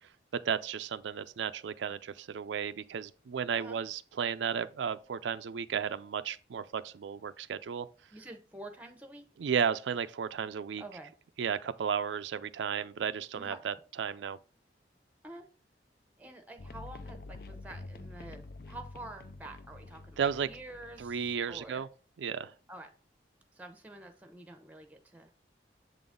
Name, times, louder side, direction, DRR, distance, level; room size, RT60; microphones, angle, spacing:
voice 1, 0.5-7.9 9.4-10.8 11.4-14.4 20.2-20.5 21.0-21.9 22.2-22.5, right 7 dB, 90° right, 0.4 m, -34 dB
voice 2, 8.1-9.2 10.8-11.1 13.3-13.6 15.2-15.5 16.2-21.8 22.7-22.9 23.5-25.3, right 1 dB, 10° right, 0.8 m, -48 dB
sound 1, 16.6-21.8, left 2 dB, 55° left, 0.4 m, -48 dB
7.7 x 3.9 x 3.7 m
head